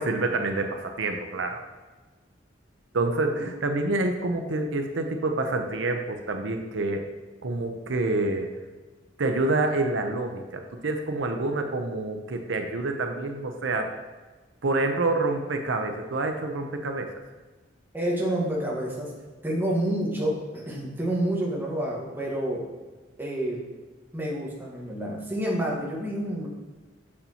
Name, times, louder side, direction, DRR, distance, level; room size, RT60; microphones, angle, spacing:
voice 1, 0.0-1.6 2.9-7.0 7.4-8.5 9.2-13.9 14.6-17.1, right 2 dB, 85° right, 4 dB, 0.7 m, -27 dB
voice 2, 17.9-19.1 19.4-22.6 23.2-23.6 24.1-26.5, right 1 dB, 10° right, -4 dB, 1.4 m, -28 dB
6.9 x 6.5 x 2.9 m, 1.3 s
head